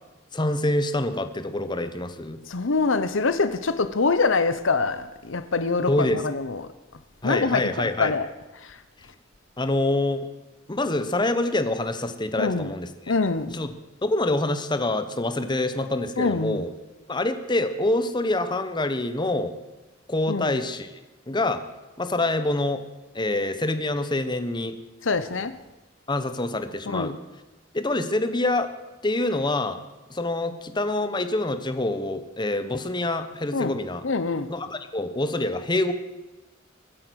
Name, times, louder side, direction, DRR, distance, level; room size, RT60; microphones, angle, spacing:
voice 1, 0.3-2.4 5.9-6.2 7.2-8.1 9.6-10.2 10.7-12.9 13.5-13.7 14.0-16.7 17.1-19.5 20.1-20.9 21.3-21.6 22.0-22.8 23.1-24.7 26.1-27.1 27.7-28.7 29.0-29.8 30.1-34.0 34.5-35.9, left 2 dB, 25° left, 1.1 m, -26 dB
voice 2, 2.5-6.6 7.2-8.3 8.6-8.8 12.4-12.7 13.1-13.6 16.2-16.6 20.3-20.6 25.0-25.5 26.9-27.2 33.5-33.7 34.0-34.5, left 4 dB, 80° left, 0.9 m, -25 dB
24.0 x 8.8 x 6.3 m
head